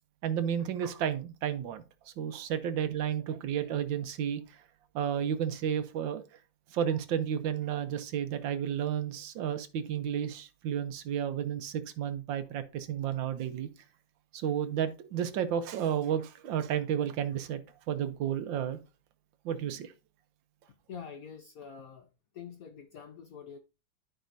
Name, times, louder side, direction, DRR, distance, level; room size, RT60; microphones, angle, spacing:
voice 1, 0.2-4.6 4.9-6.2 6.7-13.7 14.3-17.6 17.9-18.8 19.4-19.9, right 9 dB, 75° right, 1.5 m, -32 dB
voice 2, 20.9-23.6, left 7 dB, 65° left, 0.9 m, -46 dB
12.5 x 5.0 x 2.6 m
omnidirectional pair, 2.2 m